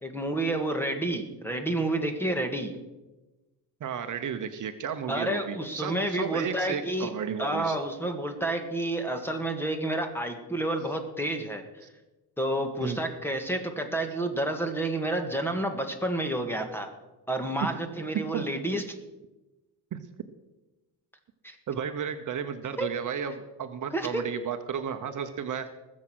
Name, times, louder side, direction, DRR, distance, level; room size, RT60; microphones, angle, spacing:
voice 1, 0.0-2.7 5.1-7.1 7.4-11.6 12.4-16.9 17.3-18.8 21.4-21.6 22.8-22.9 23.9-24.3, right 1 dB, 5° left, 6 dB, 1.8 m, -30 dB
voice 2, 3.8-7.8 12.8-13.0 17.6-17.7 18.1-18.5 19.9-20.0 21.7-25.7, right 7 dB, 50° right, 8 dB, 1.0 m, -33 dB
20.0 x 7.5 x 6.3 m, 1.1 s
cardioid pair, 125°, 40 cm